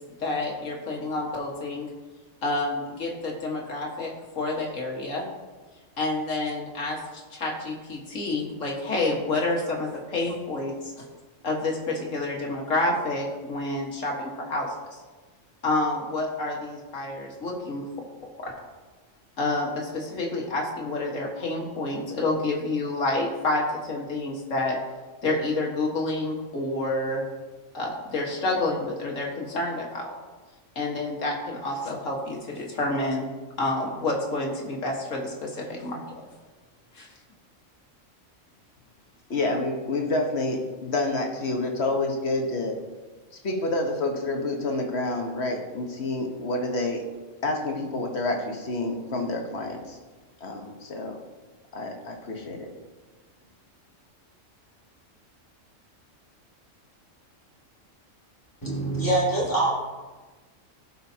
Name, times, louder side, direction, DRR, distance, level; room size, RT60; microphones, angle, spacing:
voice 1, 0.2-1.9 2.4-5.2 6.0-10.9 11.4-14.7 15.6-17.9 18.4-18.5 19.4-24.8 25.2-27.2 27.7-30.2 30.8-33.3 33.6-36.2 36.9-37.1, left 2 dB, 75° left, -1 dB, 2.0 m, -29 dB
voice 2, 39.3-42.8 43.4-47.0 47.4-50.0 50.4-51.2 51.7-52.7, left 2 dB, 55° left, 2 dB, 1.4 m, -28 dB
voice 3, 58.6-59.7, right 2 dB, 15° left, -7 dB, 2.8 m, -24 dB
16.5 x 5.6 x 2.8 m, 1.3 s
omnidirectional pair, 1.3 m